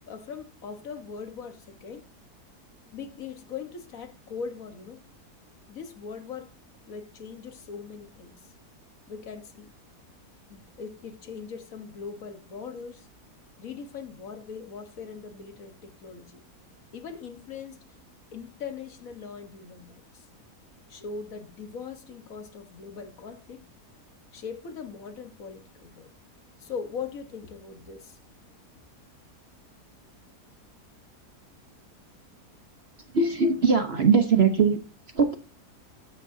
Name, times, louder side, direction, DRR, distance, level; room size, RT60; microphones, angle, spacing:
voice 1, 0.1-2.1 2.9-5.0 5.7-6.5 6.9-8.5 9.1-9.7 10.5-13.1 13.6-16.4 16.9-17.8 18.3-20.2 20.9-23.6 24.3-26.1 26.6-28.2, left 6 dB, 55° left, 1.7 m, -40 dB
voice 2, 33.1-34.8 35.1-35.4, right 5 dB, 45° right, 1.1 m, -21 dB
13.0 x 9.1 x 2.7 m
omnidirectional pair, 1.7 m